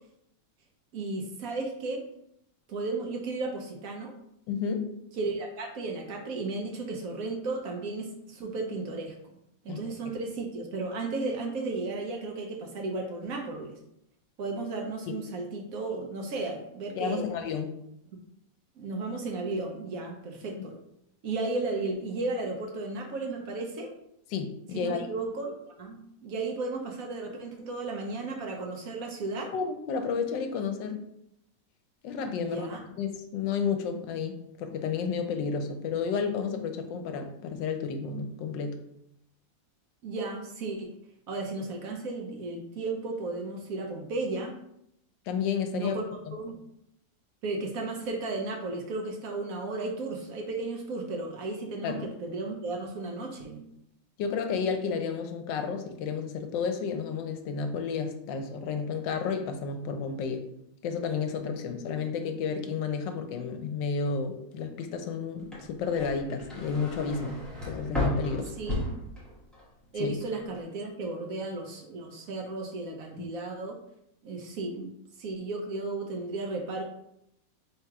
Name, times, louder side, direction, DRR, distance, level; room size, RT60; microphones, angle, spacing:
voice 1, 0.9-2.0 2.7-4.1 5.2-9.4 9.6-13.8 14.4-17.3 18.8-20.8 21.2-23.9 24.7-29.5 32.4-32.8 40.0-40.9 41.3-44.5 45.7-46.1 46.3-46.6 47.4-53.6 68.6-69.0 69.9-73.8 74.2-74.9 75.2-76.8, right 3 dB, 60° right, 1 dB, 1.0 m, -34 dB
voice 2, 4.5-4.9 9.7-9.8 17.0-17.7 24.3-25.1 29.5-31.0 32.0-32.7 33.0-38.8 45.3-45.9 46.3-46.4 51.8-52.0 54.2-60.4 60.8-67.4 67.6-68.5 70.0-70.1 73.2-73.3, left 5 dB, 80° left, 6 dB, 1.3 m, -31 dB
sound 1, 65.4-69.7 70.0-70.6, left 1 dB, ahead, 0.8 m, -34 dB
3.6 x 2.9 x 4.6 m, 0.77 s
omnidirectional pair, 2.0 m